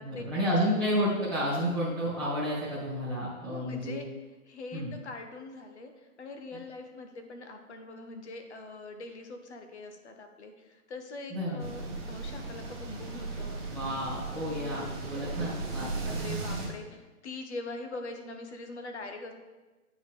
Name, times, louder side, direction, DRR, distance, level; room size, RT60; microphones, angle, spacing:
voice 1, 0.0-4.0 4.7-4.9 11.3-11.6 13.7-16.4, equal, 5° left, -12 dB, 2.1 m, -31 dB
voice 2, 3.5-4.1 4.5-13.6 14.4-15.0 16.1-19.3, left 2 dB, 50° left, 5 dB, 1.0 m, -43 dB
sound 1, 11.6-16.7, right 3 dB, 20° right, 0.9 m, -37 dB
8.6 x 5.0 x 3.6 m, 1.2 s
hypercardioid pair, 160°, 44 cm